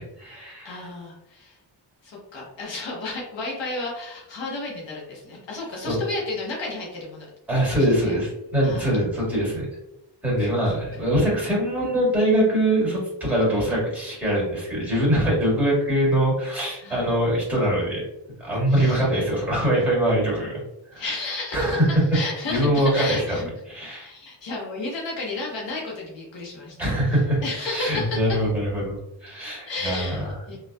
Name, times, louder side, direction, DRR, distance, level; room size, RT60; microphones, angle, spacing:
voice 1, 0.0-0.8 5.8-6.0 7.5-9.7 10.2-18.0 18.4-20.5 20.9-21.0 21.5-22.0 22.5-23.4 23.7-24.1 26.8-30.6, right 1 dB, 5° right, -5 dB, 1.5 m, -23 dB
voice 2, 0.6-1.6 2.0-8.1 8.6-9.0 10.4-10.5 16.8-17.1 18.7-19.1 20.9-21.8 22.1-23.5 24.0-26.9 27.4-28.4 29.7-30.6, left 3 dB, 80° left, -3 dB, 0.9 m, -33 dB
2.5 x 2.4 x 2.2 m, 0.86 s
cardioid pair, 90°, 44 cm